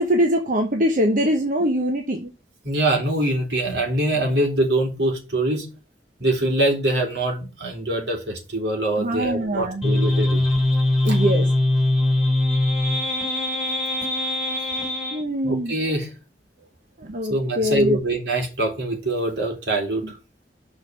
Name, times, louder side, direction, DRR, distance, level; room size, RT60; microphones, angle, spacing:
voice 1, 0.0-2.3 9.0-9.8 11.0-11.5 15.1-15.7 17.0-18.0, equal, 50° right, 1.1 m, -22 dB
voice 2, 2.6-5.7 6.2-10.4 11.1-11.2 15.4-16.1 17.3-20.2, right 1 dB, 70° right, 3.5 m, -24 dB
sound 1, 9.8-15.2, left 1 dB, 5° right, 2.6 m, -21 dB
6.6 x 4.8 x 6.3 m
head